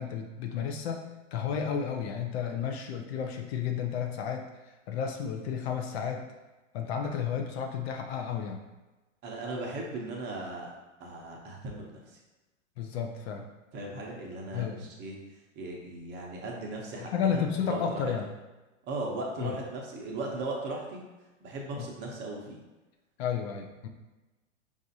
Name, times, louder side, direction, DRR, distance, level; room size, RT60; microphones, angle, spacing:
voice 1, 0.0-4.5 4.9-6.3 6.7-8.6 12.8-13.5 14.5-14.9 17.0-18.3 19.4-19.6 21.8-21.9 23.2-23.9, left 7 dB, 50° left, 3 dB, 0.6 m, -32 dB
voice 2, 9.2-10.7 11.0-12.2 13.7-15.2 15.6-18.1 18.9-21.0 21.4-22.6, right 2 dB, 25° right, -1 dB, 0.7 m, -37 dB
4.8 x 2.5 x 2.7 m, 1.1 s
hypercardioid pair, 125°, 39 cm